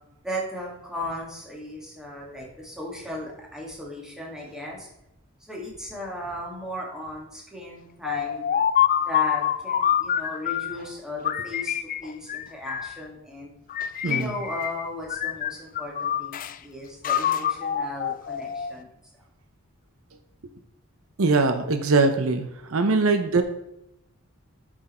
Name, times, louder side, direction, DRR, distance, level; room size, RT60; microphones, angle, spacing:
voice 1, 0.2-4.9 5.5-8.5 9.0-13.5 14.0-18.9, left 1 dB, 5° right, -3 dB, 2.1 m, -36 dB
sound 1, 8.0-10.8 11.2-13.0 13.7-14.8 15.1-16.5 17.0-18.8, left 9 dB, 40° left, 0.3 m, -26 dB
voice 2, 21.2-23.4, right 3 dB, 70° right, 8 dB, 0.7 m, -22 dB
7.9 x 6.3 x 4.3 m, 0.84 s
head